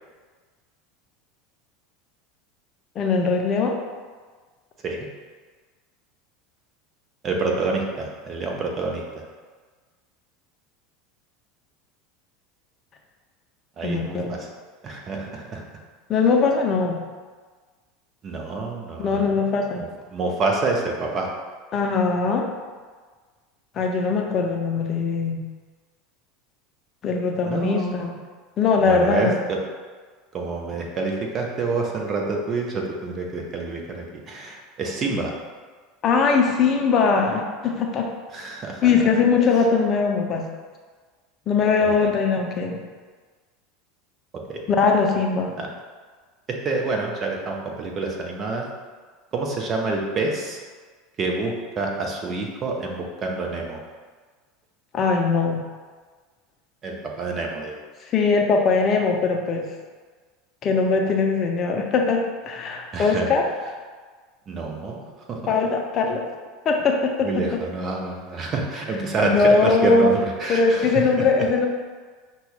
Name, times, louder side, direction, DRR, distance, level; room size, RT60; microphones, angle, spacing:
voice 1, 3.0-3.8 13.8-14.3 16.1-17.0 19.0-19.8 21.7-22.5 23.8-25.4 27.0-28.2 28.6-29.4 36.0-38.1 38.8-40.5 41.5-42.8 44.7-45.6 54.9-55.6 58.0-59.7 60.6-63.4 65.5-66.2 66.6-67.3 69.2-70.1 70.5-71.7, left 4 dB, 40° left, 2 dB, 0.5 m, -21 dB
voice 2, 7.2-9.2 13.8-14.5 14.8-15.6 18.2-19.3 19.8-21.3 27.4-28.1 28.8-29.6 30.3-35.3 38.3-38.9 41.8-42.1 44.5-44.6 45.6-45.7 46.5-48.7 49.3-50.6 51.2-53.8 56.8-57.8 62.9-63.4 64.5-65.5 67.2-71.5, right 3 dB, 35° right, 0 dB, 0.8 m, -27 dB
5.8 x 2.2 x 3.5 m, 1.5 s
figure-of-eight pair, 75°, 0 cm